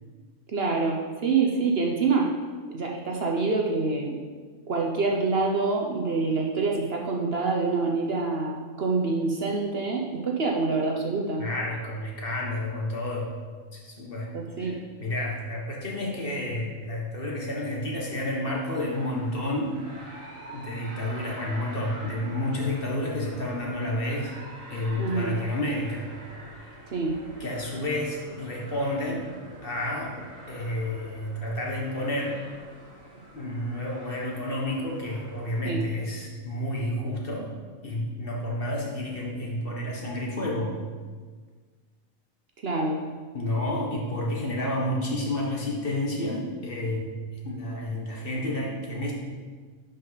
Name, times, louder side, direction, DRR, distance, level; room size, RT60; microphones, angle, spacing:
voice 1, 0.5-2.3 2.7-4.2 4.7-11.4 14.3-14.8 25.0-25.3 26.9-27.2 35.6-35.8 42.6-43.0, right 3 dB, 50° right, 0 dB, 1.0 m, -26 dB
voice 2, 11.4-13.3 13.7-14.3 14.6-19.8 20.5-24.4 24.7-26.1 26.5-26.8 27.4-29.3 29.6-30.2 30.5-32.4 33.3-37.5 37.8-40.7 43.3-47.1 47.4-49.1, left 1 dB, 45° left, -2 dB, 1.5 m, -30 dB
sound 1, 18.7-35.6, right 1 dB, 75° right, 2.0 m, -46 dB
11.0 x 5.4 x 4.1 m, 1.5 s
omnidirectional pair, 1.4 m